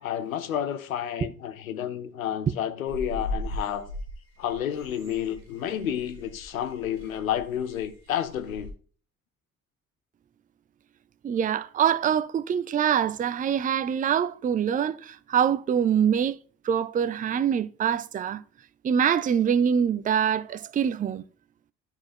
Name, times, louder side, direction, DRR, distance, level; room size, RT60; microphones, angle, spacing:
voice 1, 0.0-3.9 4.4-8.7, left 10 dB, 85° left, 0.6 m, -30 dB
sound 1, 2.9-8.7, left 1 dB, 70° right, 2.2 m, -39 dB
voice 2, 11.2-16.4 16.6-18.4 18.8-21.2, right 8 dB, 20° right, 0.4 m, -24 dB
10.5 x 4.4 x 4.3 m
figure-of-eight pair, 45°, 40 cm